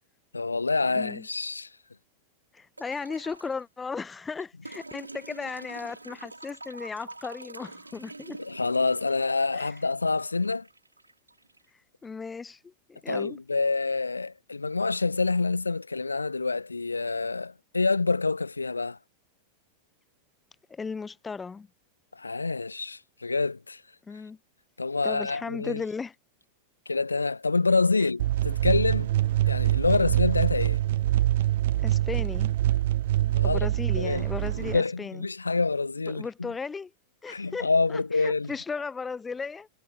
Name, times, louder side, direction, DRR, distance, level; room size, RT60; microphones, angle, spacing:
voice 1, 0.3-1.7 8.4-10.7 13.1-19.0 22.2-23.8 24.8-25.8 26.9-29.1 29.5-30.8 33.3-33.6 34.0-34.2 34.6-36.5 37.3-38.5, left 3 dB, 80° left, 0.6 m, -27 dB
voice 2, 0.8-1.3 2.5-8.4 9.5-9.7 12.0-13.4 20.7-21.7 24.1-24.4 25.0-26.2 31.8-32.5 33.4-35.3 36.1-36.9 37.2-39.7, left 5 dB, 15° left, 0.5 m, -36 dB
sound 1, 2.8-3.6 4.7-11.7 13.0-13.1, right 2 dB, 85° right, 1.4 m, -45 dB
sound 2, 28.2-34.8, right 14 dB, 55° right, 0.5 m, -25 dB
figure-of-eight pair, 90°, 0 cm